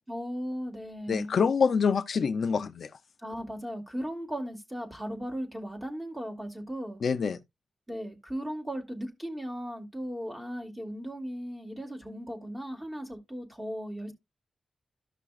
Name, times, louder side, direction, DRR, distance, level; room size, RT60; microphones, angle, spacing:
voice 1, 0.1-1.4 3.2-7.0 7.9-14.1, equal, 10° right, 2.6 m, -37 dB
voice 2, 1.1-2.9 7.0-7.4, left 6 dB, 55° left, 0.5 m, -26 dB
14.0 x 5.8 x 2.4 m
wide cardioid pair, 140°, 0 cm